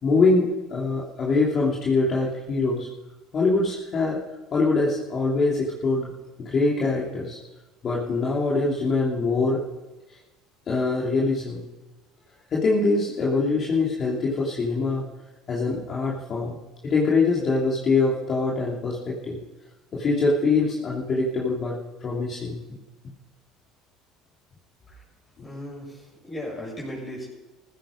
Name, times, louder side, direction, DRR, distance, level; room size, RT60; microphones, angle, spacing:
voice 1, 0.0-2.9 3.3-4.2 4.5-6.1 6.4-7.4 7.8-9.7 10.7-11.6 12.5-15.1 15.5-16.6 16.8-19.4 19.9-22.6, left 3 dB, 40° left, -4 dB, 3.0 m, -23 dB
voice 2, 25.4-27.3, equal, 25° left, -3 dB, 6.5 m, -36 dB
15.5 x 14.5 x 5.2 m, 1.1 s
supercardioid pair, 95°, 0 cm